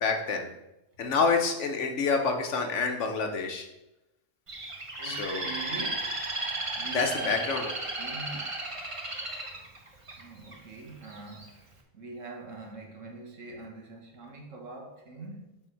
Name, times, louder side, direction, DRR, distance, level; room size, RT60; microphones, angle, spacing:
voice 1, 0.0-0.5 1.0-3.7 5.0-5.5 6.9-7.7, left 4 dB, 70° left, 4 dB, 1.3 m, -27 dB
Bird, 4.5-10.5 11.1-11.5, right 2 dB, 30° right, 0.9 m, -34 dB
voice 2, 5.0-6.2 6.7-7.6 8.0-8.6 10.2-11.6 11.9-15.6, right 3 dB, 85° right, 0 dB, 1.8 m, -43 dB
8.0 x 4.2 x 4.6 m, 0.92 s
omnidirectional pair, 1.3 m